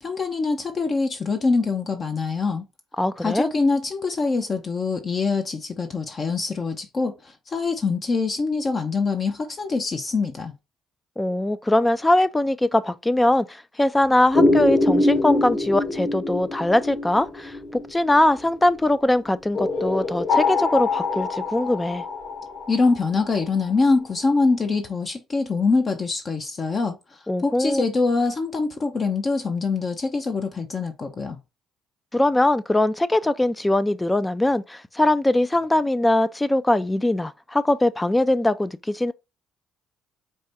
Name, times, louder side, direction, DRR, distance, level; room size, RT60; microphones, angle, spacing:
voice 1, 0.0-2.6 3.2-10.5 22.7-31.4, left 4 dB, 40° left, 0.7 m, -24 dB
voice 2, 3.0-3.5 11.2-22.0 27.3-27.8 32.1-39.1, left 1 dB, 15° left, 0.4 m, -21 dB
sound 1, 14.3-18.6 19.6-23.4, left 2 dB, 55° left, 2.7 m, -24 dB
4.7 x 2.2 x 4.1 m
supercardioid pair, 75°, 0 cm